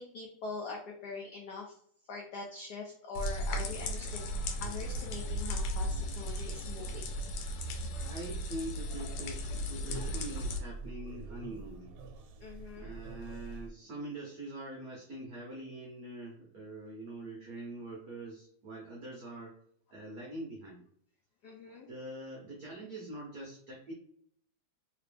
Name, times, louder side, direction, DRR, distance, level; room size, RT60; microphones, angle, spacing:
voice 1, 0.0-1.7 2.1-4.3 4.6-7.1 12.4-12.9 21.4-21.9, left 4 dB, 70° left, -1 dB, 1.0 m, -43 dB
sound 1, 3.1-10.6, equal, 90° left, 1.6 m, -36 dB
sound 2, 5.1-13.7, right 4 dB, 90° right, 1.5 m, -46 dB
voice 2, 8.0-11.9 12.7-19.5 19.9-20.9 21.9-23.9, right 1 dB, 60° right, -2 dB, 1.0 m, -44 dB
3.3 x 2.9 x 3.3 m, 0.65 s
omnidirectional pair, 2.4 m